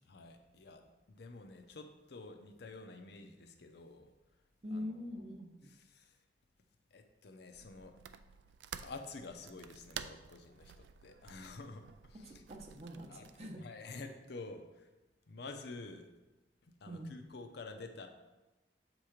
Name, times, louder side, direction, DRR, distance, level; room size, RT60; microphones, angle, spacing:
voice 1, 0.1-4.1 4.7-4.9 5.9-6.2 6.9-8.0 8.8-12.4 13.1-14.9 15.3-16.1 16.6-18.1, left 3 dB, 65° left, 6 dB, 0.6 m, -49 dB
voice 2, 4.6-5.7 12.2-13.6 16.9-17.2, left 1 dB, 35° right, 3 dB, 0.7 m, -44 dB
sound 1, 7.5-13.5, right 8 dB, 70° right, 0.3 m, -51 dB
7.3 x 3.0 x 4.9 m, 1.1 s
head